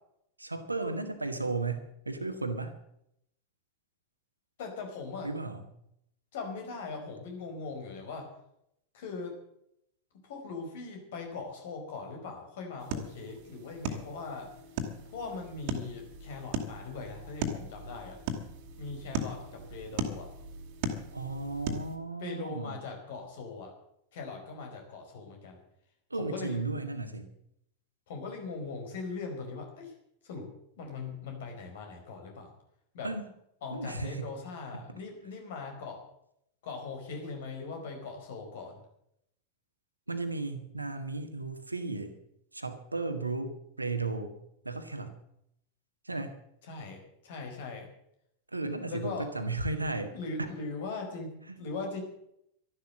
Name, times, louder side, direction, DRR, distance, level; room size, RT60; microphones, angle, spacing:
voice 1, 0.4-2.7 5.2-5.6 21.1-22.8 26.1-27.3 33.0-33.2 33.7-34.3 34.7-34.8 40.1-42.1 42.5-44.3 44.6-45.2 46.1-46.3 48.5-50.1 51.5-51.6, right 3 dB, 85° right, 7 dB, 1.8 m, -34 dB
voice 2, 4.6-5.3 6.3-8.3 8.9-9.4 10.2-14.5 15.0-18.2 18.8-20.3 22.2-23.7 24.1-25.6 26.1-26.6 28.1-29.9 30.2-30.5 30.8-32.5 32.9-33.1 33.6-36.0 36.6-38.8 46.6-47.9 48.8-49.3 50.1-51.3 51.6-52.0, left 4 dB, 55° left, 3 dB, 4.7 m, -40 dB
sound 1, 12.8-22.0, right 2 dB, 45° right, 2.3 m, -38 dB
12.5 x 11.5 x 7.6 m, 0.76 s
figure-of-eight pair, 90°, 0 cm